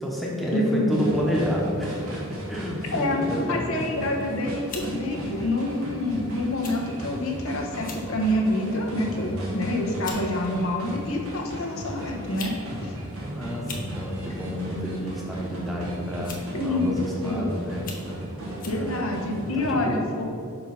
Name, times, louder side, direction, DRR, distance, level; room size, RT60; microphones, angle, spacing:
voice 1, 0.0-3.9 9.1-9.7 12.7-17.8 18.7-19.0 19.6-20.1, equal, ahead, -4 dB, 1.0 m, -30 dB
voice 2, 0.5-1.1 2.9-3.2 3.5-12.5 12.8-12.9 16.5-17.4 18.6-20.2, left 1 dB, 80° left, 0 dB, 1.0 m, -27 dB
sound 1, 0.9-19.7, right 1 dB, 90° right, 1.6 m, -36 dB
sound 2, 4.0-4.2 4.7-4.9 5.7-5.9 6.6-6.8 7.1-7.2 7.7-8.1 8.6-8.9 9.6-9.7 10.0-10.2 11.3-11.4 12.2-12.6 12.8-12.9 13.5-13.9 15.1-15.4 16.2-16.6 17.1-17.2 17.7-18.1 18.6-18.8, left 4 dB, 40° left, 0.8 m, -39 dB
5.5 x 4.6 x 5.5 m, 2.5 s
head